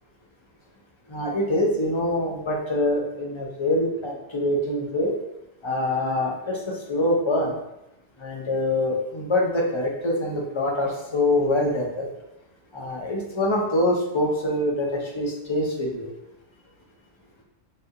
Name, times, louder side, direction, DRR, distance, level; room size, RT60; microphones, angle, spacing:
voice 1, 1.1-5.1 5.6-7.5 8.2-12.1 12.7-16.1, left 1 dB, 30° left, -1 dB, 0.7 m, -25 dB
4.3 x 3.4 x 2.5 m, 0.86 s
omnidirectional pair, 1.2 m